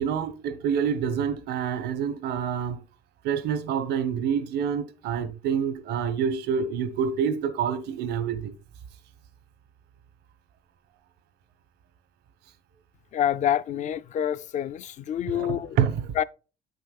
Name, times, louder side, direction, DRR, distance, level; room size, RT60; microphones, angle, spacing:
voice 1, 0.0-2.8 3.2-8.5 15.3-15.5 15.8-16.0, right 7 dB, 80° right, 1.0 m, -27 dB
voice 2, 13.1-15.8 16.1-16.2, left 10 dB, 45° left, 0.4 m, -27 dB
8.1 x 6.7 x 2.4 m
cardioid pair, 110°, 17 cm